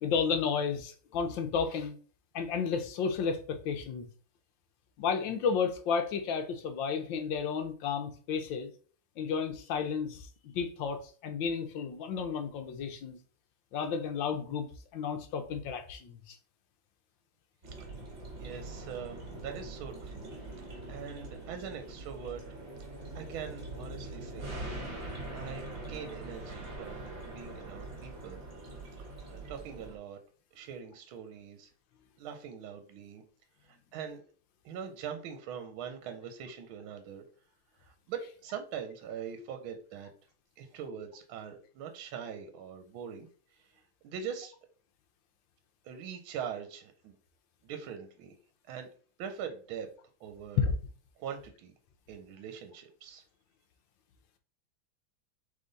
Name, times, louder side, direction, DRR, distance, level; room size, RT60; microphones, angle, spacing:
voice 1, 0.0-1.9 2.3-4.1 5.0-8.7 9.2-13.2 13.7-14.7 14.9-16.4 50.6-50.7, left 6 dB, 70° left, 1.3 m, -32 dB
sound 1, 17.6-30.0, right 2 dB, 35° right, 1.2 m, -43 dB
voice 2, 18.4-22.4 23.1-24.6 25.0-28.4 29.0-30.2 30.5-31.7 32.2-33.2 33.6-34.2 34.6-37.2 37.8-40.1 40.6-43.3 43.6-43.7 44.0-44.5 45.8-47.2 47.6-48.3 48.7-48.9 49.2-49.9 50.2-50.7 51.2-51.7 52.1-53.2, right 7 dB, 75° right, 1.4 m, -42 dB
3.7 x 3.5 x 3.9 m
omnidirectional pair, 2.4 m